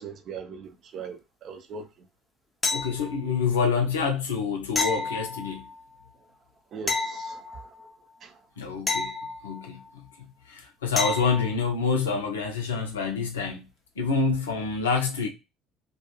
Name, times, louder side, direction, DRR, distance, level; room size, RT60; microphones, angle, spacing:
voice 1, 0.0-2.1 6.7-7.7 8.2-8.4, right 5 dB, 45° right, 0.5 m, -40 dB
sound 1, 2.6-3.4 4.7-5.8 6.9-7.9 8.9-9.9 11.0-11.6 14.3-14.4, left 3 dB, 20° left, 0.5 m, -30 dB
voice 2, 2.7-5.7 8.6-9.1 9.4-10.0 10.5-13.7 14.0-15.3, left 5 dB, 75° left, 0.5 m, -27 dB
2.3 x 2.2 x 2.9 m
figure-of-eight pair, 60°, 0 cm